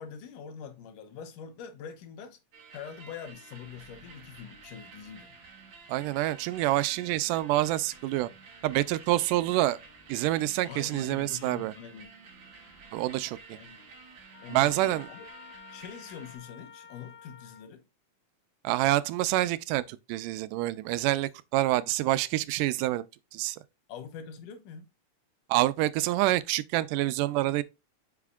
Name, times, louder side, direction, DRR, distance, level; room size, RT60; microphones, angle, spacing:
voice 1, 0.0-2.4 2.7-5.3 10.7-12.1 13.5-13.9 14.4-15.2 15.7-17.8 23.9-24.9, left 7 dB, 80° left, 2.7 m, -44 dB
sound 1, 2.5-16.4, right 4 dB, 40° right, 2.1 m, -51 dB
voice 2, 5.9-8.3 8.6-9.8 10.1-11.7 12.9-13.6 14.5-15.1 18.6-23.1 23.3-23.6 25.5-27.6, right 16 dB, 90° right, 2.2 m, -27 dB
Trumpet, 14.3-17.7, left 7 dB, 65° left, 3.0 m, -50 dB
8.4 x 5.7 x 2.4 m
omnidirectional pair, 3.7 m